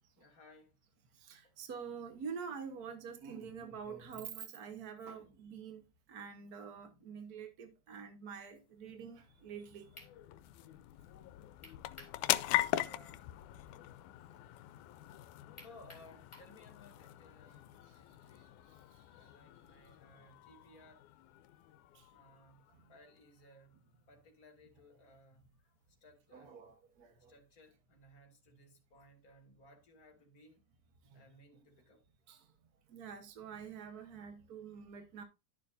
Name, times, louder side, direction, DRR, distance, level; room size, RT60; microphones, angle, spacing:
voice 1, 0.2-0.8 1.4-1.5 5.2-5.4 6.7-7.1 12.7-13.3 15.6-18.5 19.1-21.0 22.1-22.6 22.9-23.8 24.1-25.7 26.0-26.6 27.3-30.6 31.1-32.0, left 1 dB, 35° left, 2.1 m, -61 dB
voice 2, 1.2-5.8 6.1-9.9 21.9-22.0 26.3-27.3 31.1-31.2 32.3-32.4 32.9-35.2, right 6 dB, 80° right, 0.8 m, -46 dB
sound 1, 8.8-23.7, left 16 dB, 85° left, 2.0 m, -41 dB
sound 2, 9.9-10.1 11.6-12.2 12.6-12.7 15.6-16.5, left 1 dB, 10° left, 2.4 m, -54 dB
12.5 x 6.7 x 2.6 m
omnidirectional pair, 3.5 m